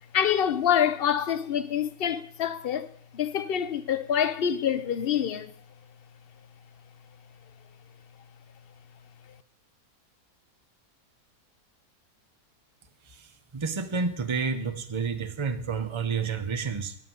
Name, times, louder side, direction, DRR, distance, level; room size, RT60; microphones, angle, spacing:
voice 1, 0.1-2.9 3.1-5.5, left 9 dB, 55° left, 0.6 m, -26 dB
voice 2, 13.1-17.0, right 5 dB, 20° right, 0.9 m, -30 dB
14.0 x 5.8 x 9.5 m
omnidirectional pair, 1.7 m